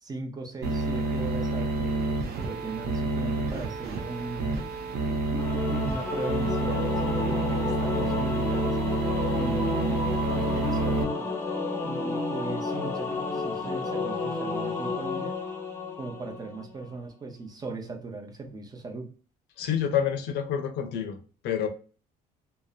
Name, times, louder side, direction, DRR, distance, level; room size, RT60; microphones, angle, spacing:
voice 1, 0.0-4.5 5.0-8.8 9.3-10.0 10.4-11.3 11.8-15.4 16.0-19.1, right 3 dB, 25° right, 0.6 m, -38 dB
sound 1, 0.6-11.0, right 2 dB, 65° right, 0.6 m, -29 dB
Singing / Musical instrument, 5.4-16.6, left 3 dB, 15° left, 0.7 m, -31 dB
voice 2, 19.6-21.2 21.4-21.7, left 8 dB, 85° left, 0.6 m, -28 dB
2.7 x 2.1 x 2.3 m
cardioid pair, 110°, 17 cm